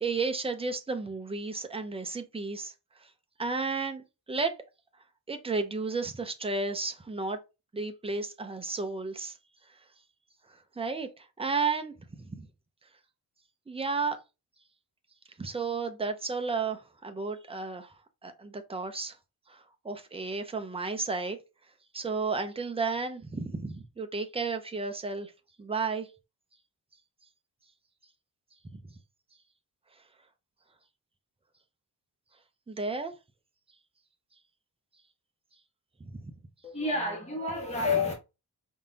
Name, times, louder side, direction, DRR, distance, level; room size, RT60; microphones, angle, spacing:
voice 1, 0.0-2.7 3.4-4.5 5.3-7.4 7.7-9.4 10.8-12.5 13.7-14.2 15.4-17.9 18.2-19.2 19.5-21.4 21.9-25.3 25.6-26.1 28.7-28.8 32.7-33.1 36.0-36.3, right 4 dB, 15° right, 0.6 m, -33 dB
voice 2, 36.6-38.1, left 3 dB, 15° left, 1.3 m, -29 dB
4.9 x 3.7 x 2.8 m
wide cardioid pair, 160°, 41 cm